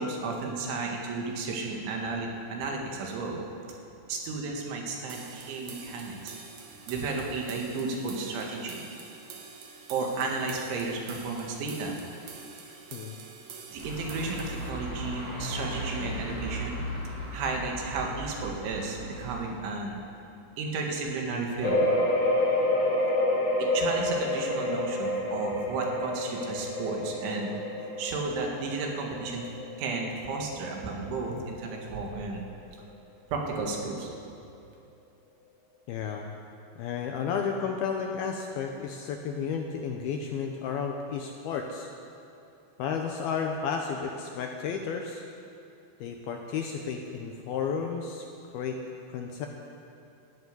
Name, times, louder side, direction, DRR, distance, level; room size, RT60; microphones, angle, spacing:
voice 1, 0.0-3.4 4.1-6.3 6.9-8.9 9.9-12.0 13.7-16.8 17.3-20.0 20.6-21.8 23.6-27.5 28.0-29.5 29.8-32.4 33.3-34.1, right 3 dB, 85° right, 0 dB, 4.3 m, -33 dB
sound 1, 5.1-14.7, right 5 dB, 60° right, 2.5 m, -46 dB
sound 2, 13.8-19.5, right 1 dB, 45° right, 5.4 m, -37 dB
sound 3, 21.6-31.1 31.5-31.6 32.1-32.2, left 1 dB, 45° left, 2.4 m, -28 dB
voice 2, 35.9-36.2 36.8-41.9 42.8-45.2 46.0-48.3 48.5-48.8 49.1-49.5, left 6 dB, 80° left, 3 dB, 2.3 m, -32 dB
13.5 x 11.0 x 9.7 m, 2.6 s
omnidirectional pair, 5.3 m